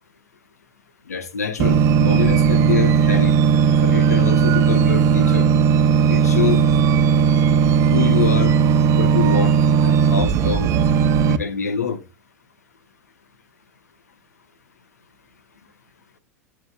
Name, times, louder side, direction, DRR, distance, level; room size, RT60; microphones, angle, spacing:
voice 1, 1.1-3.3 3.8-5.5 6.1-6.6 7.9-8.6 8.9-9.6 9.8-10.7 11.2-12.0, left 6 dB, 80° left, 1.0 m, -25 dB
sound 1, 1.6-11.4, right 7 dB, 40° right, 0.7 m, -16 dB
10.5 x 6.1 x 2.3 m
figure-of-eight pair, 90°, 8 cm